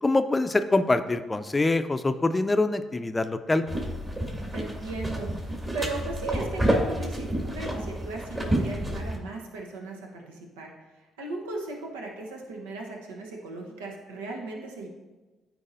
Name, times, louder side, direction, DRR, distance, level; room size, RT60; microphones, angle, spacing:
voice 1, 0.0-3.6, left 2 dB, 20° left, 10 dB, 0.5 m, -24 dB
sound 1, 3.7-9.2, right 1 dB, 25° right, 2.1 m, -29 dB
voice 2, 4.5-10.7 11.0-14.9, right 3 dB, 80° right, 0 dB, 1.0 m, -37 dB
13.5 x 4.7 x 2.7 m, 1.2 s
hypercardioid pair, 45°, 0 cm